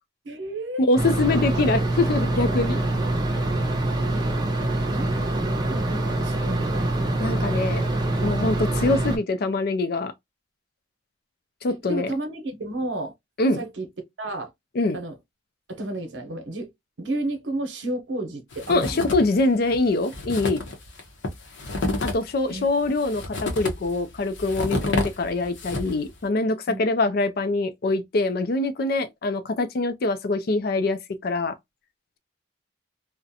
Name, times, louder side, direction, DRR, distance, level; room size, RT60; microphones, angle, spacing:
voice 1, 0.2-0.9 1.7-1.8 4.1-4.2 4.9-6.9 11.7-13.1 13.6-13.9 14.2-14.5 14.9-15.1 15.7-16.7 17.0-19.1 22.5-22.9 26.7-26.8, right 2 dB, 80° right, 0.8 m, -32 dB
voice 2, 0.8-2.8 7.2-7.8 8.2-10.1 11.6-12.1 13.4-13.6 14.7-15.0 18.7-20.6 22.0-31.6, left 2 dB, 55° left, 0.4 m, -24 dB
sound 1, 1.0-9.2, right 2 dB, 20° right, 0.5 m, -24 dB
sound 2, 18.5-19.4 19.7-19.8 20.0-26.1, left 2 dB, 85° left, 0.7 m, -30 dB
2.4 x 2.1 x 2.6 m
head